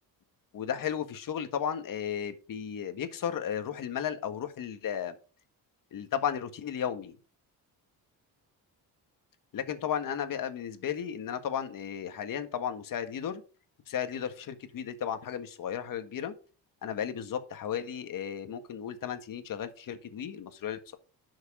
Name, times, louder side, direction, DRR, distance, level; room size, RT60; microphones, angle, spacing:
voice 1, 0.5-5.2 5.9-7.1 9.5-13.4 13.9-16.3 16.8-21.0, left 8 dB, 55° left, 9 dB, 1.7 m, -34 dB
11.5 x 6.6 x 5.0 m, 0.36 s
cardioid pair, 115°, 39 cm